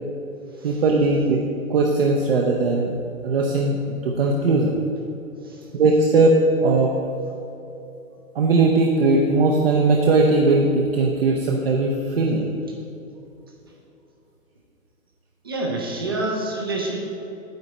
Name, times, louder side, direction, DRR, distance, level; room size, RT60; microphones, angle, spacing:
voice 1, 0.6-1.4 1.7-2.9 3.2-4.8 5.7-6.9 8.3-12.5, right 3 dB, 45° right, 0 dB, 0.8 m, -19 dB
voice 2, 15.4-17.0, right 2 dB, 15° right, 0 dB, 0.6 m, -27 dB
9.4 x 8.0 x 4.3 m, 2.9 s
hypercardioid pair, 170°, 42 cm